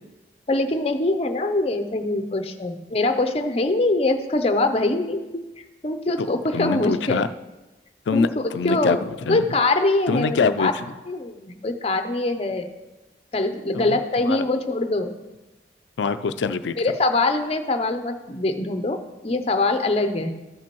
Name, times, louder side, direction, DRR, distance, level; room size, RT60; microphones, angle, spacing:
voice 1, 0.5-5.2 5.8-7.2 8.1-9.0 9.3-10.7 11.1-12.7 13.3-15.1 16.8-20.3, left 2 dB, 35° left, 7 dB, 0.6 m, -23 dB
voice 2, 6.5-7.3 8.1-9.4 10.1-10.9 13.7-14.5 16.0-16.8, left 4 dB, 80° left, 11 dB, 0.4 m, -24 dB
14.0 x 6.0 x 3.0 m, 1.1 s
head